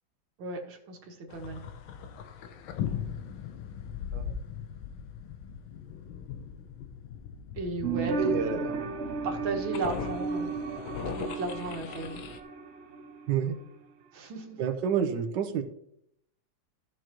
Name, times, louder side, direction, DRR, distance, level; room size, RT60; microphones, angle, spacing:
voice 1, 0.4-1.6 7.5-8.6 9.2-10.5 11.0-12.2 14.1-14.6, right 3 dB, 90° right, 2 dB, 2.2 m, -35 dB
sound 1, 1.3-12.4, left 8 dB, 90° left, 1.6 m, -39 dB
sound 2, 7.8-13.3 13.6-13.7, right 4 dB, 55° right, 0.8 m, -35 dB
voice 2, 8.2-8.7 13.3-13.5 14.6-15.6, right 8 dB, 70° right, 6 dB, 1.5 m, -28 dB
14.5 x 6.3 x 3.0 m, 0.72 s
omnidirectional pair, 2.1 m